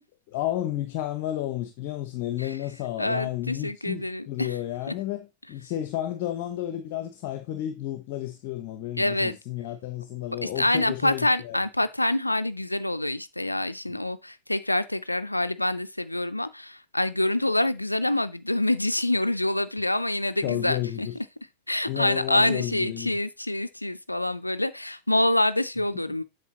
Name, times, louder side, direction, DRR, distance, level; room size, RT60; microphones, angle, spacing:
voice 1, 0.3-11.6 13.9-14.0 20.4-21.1 21.9-23.2, left 13 dB, 50° left, 0.8 m, -32 dB
voice 2, 3.0-4.6 9.0-9.4 10.4-21.1 21.7-26.2, left 1 dB, 90° left, 0.4 m, -26 dB
8.2 x 6.5 x 2.9 m
figure-of-eight pair, 90°, 0 cm